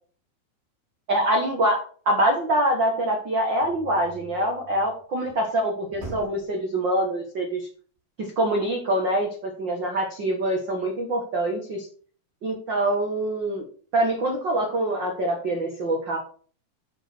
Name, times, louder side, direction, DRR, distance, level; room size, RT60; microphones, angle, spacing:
voice 1, 1.1-7.7 8.2-11.9 12.4-13.6 13.9-16.2, right 1 dB, 90° right, 1 dB, 1.0 m, -25 dB
sound 1, 3.6-5.5 5.9-6.6, right 2 dB, 45° right, 2.5 m, -43 dB
8.9 x 5.2 x 6.0 m, 0.44 s
omnidirectional pair, 4.7 m